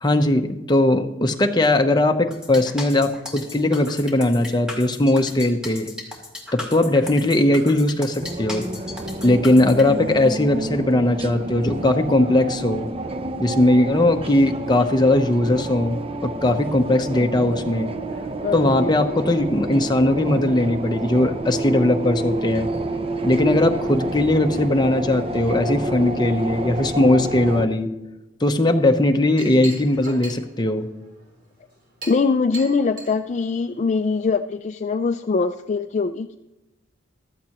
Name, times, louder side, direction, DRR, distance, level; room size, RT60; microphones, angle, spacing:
voice 1, 0.0-5.9 6.5-8.7 9.2-12.9 13.4-17.9 18.5-22.7 23.2-27.9 28.4-30.9, left 1 dB, 25° left, 5 dB, 0.8 m, -19 dB
sound 1, 2.3-9.8, left 2 dB, 5° right, 2.1 m, -36 dB
sound 2, 8.2-27.7, right 1 dB, 30° right, 0.6 m, -29 dB
voice 2, 18.4-18.9 32.1-36.4, left 4 dB, 40° left, 8 dB, 0.4 m, -22 dB
Chink clink, 28.9-34.2, right 1 dB, 50° right, 4.3 m, -41 dB
15.0 x 13.0 x 3.0 m, 0.99 s
head